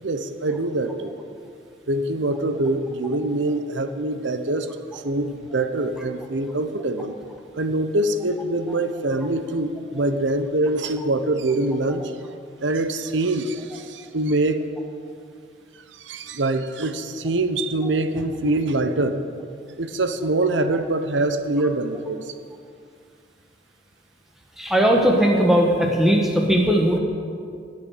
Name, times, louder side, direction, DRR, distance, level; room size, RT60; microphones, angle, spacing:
voice 1, 0.0-1.2 1.9-7.2 7.6-12.0 12.6-14.6 16.0-19.2 19.8-22.3, right 2 dB, 80° right, 9 dB, 0.9 m, -24 dB
voice 2, 24.6-27.0, equal, ahead, 0 dB, 1.4 m, -18 dB
19.0 x 6.6 x 6.7 m, 2.3 s
head